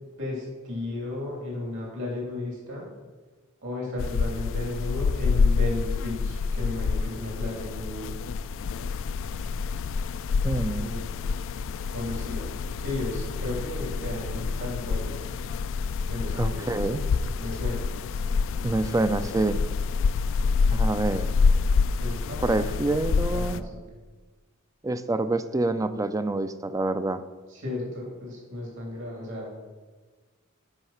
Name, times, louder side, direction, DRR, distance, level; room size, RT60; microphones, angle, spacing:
voice 1, 0.2-2.9 3.6-8.2 10.7-11.1 11.9-12.5 12.8-15.3 16.1-17.0 17.4-17.9 22.0-22.8 23.3-23.8 27.5-29.6, left 2 dB, 65° right, -2 dB, 3.1 m, -34 dB
sound 1, 4.0-23.6, left 4 dB, 60° left, 0.3 m, -27 dB
voice 2, 10.4-11.0 16.4-17.0 18.6-19.6 20.7-21.3 22.4-23.6 24.8-27.2, right 2 dB, 15° right, 12 dB, 0.4 m, -26 dB
8.9 x 5.7 x 5.6 m, 1.3 s
head